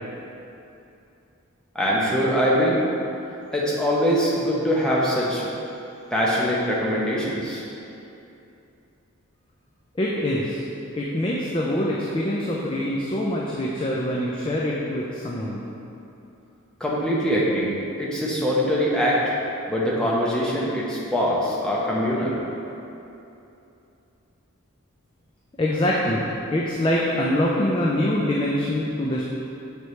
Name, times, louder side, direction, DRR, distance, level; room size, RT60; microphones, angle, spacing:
voice 1, 1.7-2.8 3.5-5.5 6.1-7.6 16.8-17.7 18.0-19.3 19.7-22.4, equal, 5° left, -6 dB, 0.8 m, -23 dB
voice 2, 9.9-10.7 11.0-15.6 25.6-29.2, left 1 dB, 25° left, -4 dB, 0.4 m, -24 dB
6.6 x 4.6 x 3.2 m, 2.8 s
head